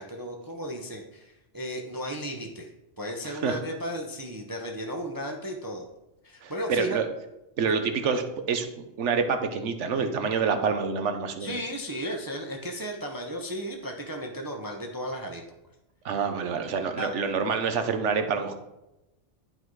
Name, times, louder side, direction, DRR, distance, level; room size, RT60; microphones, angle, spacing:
voice 1, 0.0-5.9 6.2-7.0 11.4-15.4 17.0-17.1, equal, 20° right, 1 dB, 0.7 m, -35 dB
voice 2, 3.2-3.6 6.4-7.1 7.6-8.7 9.0-11.5 16.0-18.5, right 5 dB, 80° right, 7 dB, 1.2 m, -27 dB
11.0 x 4.2 x 4.7 m, 0.92 s
omnidirectional pair, 1.2 m